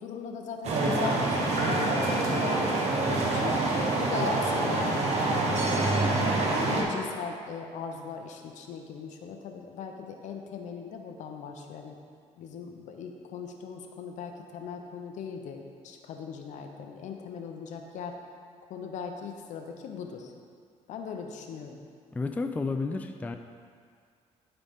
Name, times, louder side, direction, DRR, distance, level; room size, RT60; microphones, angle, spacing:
voice 1, 0.0-3.6 3.9-5.8 6.2-12.0 12.4-18.2 18.7-20.3 20.9-21.8, left 6 dB, 75° left, 3 dB, 0.8 m, -39 dB
sound 1, 0.6-6.8, right 2 dB, 60° right, 1.2 m, -26 dB
voice 2, 22.1-23.4, left 3 dB, 10° left, 6 dB, 0.3 m, -31 dB
12.0 x 4.0 x 3.6 m, 2.1 s
cardioid pair, 120°, 13 cm